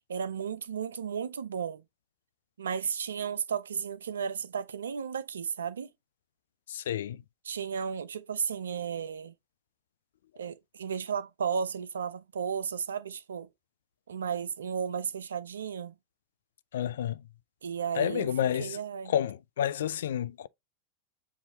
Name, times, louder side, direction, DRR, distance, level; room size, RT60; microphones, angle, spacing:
voice 1, 0.1-1.8 2.6-5.9 7.5-9.3 10.4-13.5 14.1-16.0 17.6-18.3 18.6-19.1, right 7 dB, 65° right, 0.4 m, -34 dB
voice 2, 6.7-7.2 16.7-17.2 17.9-18.8 19.1-20.5, left 10 dB, 60° left, 0.3 m, -30 dB
6.9 x 2.6 x 2.8 m
figure-of-eight pair, 90°, 0 cm